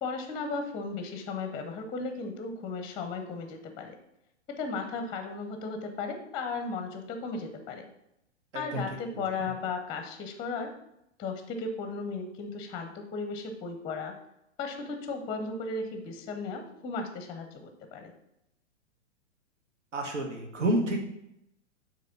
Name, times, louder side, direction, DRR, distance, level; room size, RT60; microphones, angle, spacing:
voice 1, 0.0-4.0 4.5-7.9 8.5-10.7 11.2-14.2 14.6-18.1, left 4 dB, 10° left, 6 dB, 0.6 m, -35 dB
voice 2, 19.9-21.1, right 1 dB, 75° right, 1 dB, 1.5 m, -29 dB
7.6 x 3.0 x 5.8 m, 0.82 s
hypercardioid pair, 115°, 37 cm